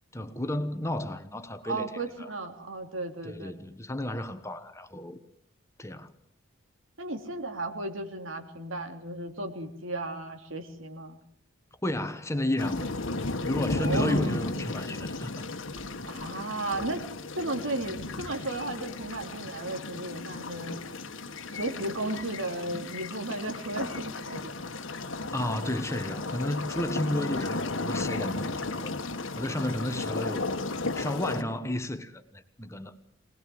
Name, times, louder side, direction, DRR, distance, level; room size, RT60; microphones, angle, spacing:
voice 1, 0.1-2.3 3.2-5.2 5.8-6.1 11.8-12.9 13.5-15.4 25.3-29.0 29.4-30.5 30.9-33.0, left 1 dB, 15° left, 1.2 m, -32 dB
voice 2, 1.6-3.5 7.0-11.2 13.8-14.4 16.1-17.0 17.4-20.8 21.5-24.7, right 2 dB, 80° right, 3.1 m, -34 dB
sound 1, 12.6-31.4, left 2 dB, 70° left, 1.4 m, -34 dB
24.0 x 19.5 x 7.8 m
head